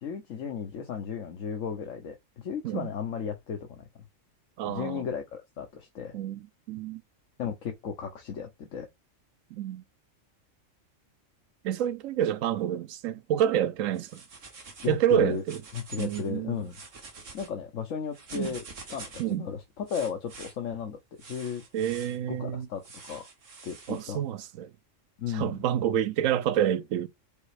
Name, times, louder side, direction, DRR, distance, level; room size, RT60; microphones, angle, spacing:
voice 1, 0.0-3.9 4.6-6.2 7.4-8.9 14.8-15.4 15.7-16.8 17.3-18.6 18.9-21.0 21.2-21.6 22.3-23.3 23.6-24.2 25.2-25.6, left 7 dB, 80° left, 1.3 m, -35 dB
voice 2, 4.6-5.0 6.1-7.0 9.5-9.8 11.6-14.2 14.9-15.6 16.0-16.6 18.3-18.5 19.2-19.4 21.7-22.7 23.9-24.7 25.3-27.1, right 10 dB, 90° right, 1.0 m, -28 dB
sound 1, 13.9-15.0 15.3-16.3 16.6-17.5 18.1-19.3 19.9-20.5 21.2-22.2 22.8-24.0, right 4 dB, 75° right, 1.9 m, -46 dB
5.3 x 4.1 x 4.9 m
omnidirectional pair, 1.3 m